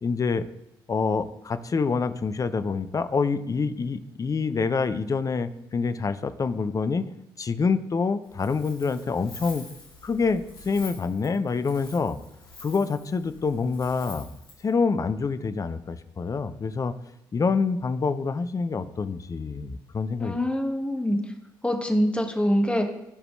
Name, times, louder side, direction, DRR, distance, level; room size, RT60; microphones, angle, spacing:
voice 1, 0.0-0.5 0.9-7.1 7.4-9.6 10.0-12.2 12.6-14.3 14.6-16.9 17.3-20.3, left 4 dB, 30° left, 12 dB, 0.6 m, -26 dB
Wind, 8.2-14.7, left 3 dB, 85° left, 1.1 m, -47 dB
voice 2, 20.2-21.2 21.6-22.9, equal, 10° left, 3 dB, 1.7 m, -24 dB
13.0 x 5.0 x 3.2 m, 0.84 s
figure-of-eight pair, 40°, 12 cm